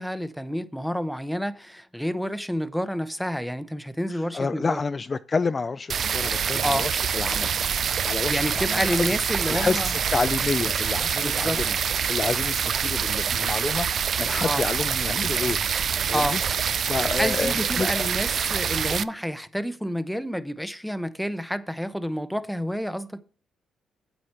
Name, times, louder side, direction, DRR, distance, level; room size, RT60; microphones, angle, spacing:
voice 1, 0.0-4.8 6.6-6.9 8.3-9.9 11.2-11.6 14.4-14.6 16.1-16.4 17.2-23.2, equal, ahead, 0.8 m, -29 dB
voice 2, 4.1-7.5 8.0-9.1 9.5-11.8 12.1-16.4 16.8-18.1, left 4 dB, 30° left, 0.4 m, -29 dB
sound 1, 5.9-19.0, right 7 dB, 55° right, 0.4 m, -26 dB
8.3 x 7.8 x 4.3 m
cardioid pair, 90°, 0 cm